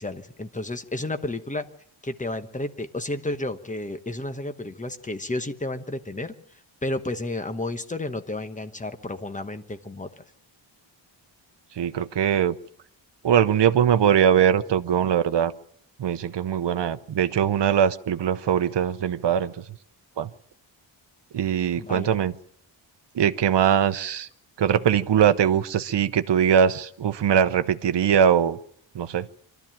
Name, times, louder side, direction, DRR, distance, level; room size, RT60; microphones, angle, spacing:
voice 1, 0.0-1.7 2.0-6.3 6.8-10.1 21.7-22.1, left 2 dB, 15° left, 8 dB, 1.1 m, -31 dB
voice 2, 11.8-12.5 13.2-15.5 16.0-19.6 20.2-20.3 21.3-22.3 23.1-24.3 24.6-28.6 28.9-29.3, right 8 dB, 60° right, 11 dB, 0.9 m, -21 dB
24.5 x 13.0 x 8.9 m, 0.69 s
wide cardioid pair, 180°, 48 cm